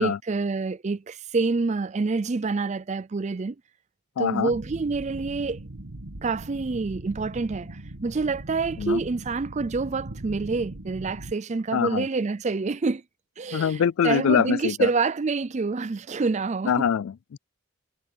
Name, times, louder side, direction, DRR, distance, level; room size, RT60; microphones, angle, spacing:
voice 1, 0.0-3.6 4.2-5.6 6.2-13.0 13.4-16.9, right 4 dB, 30° right, 0.4 m, -27 dB
voice 2, 4.2-4.5 8.8-9.0 11.7-12.1 13.5-14.9 16.7-17.4, left 7 dB, 65° left, 0.3 m, -24 dB
sound 1, 4.5-11.3, right 1 dB, 65° right, 1.8 m, -40 dB
head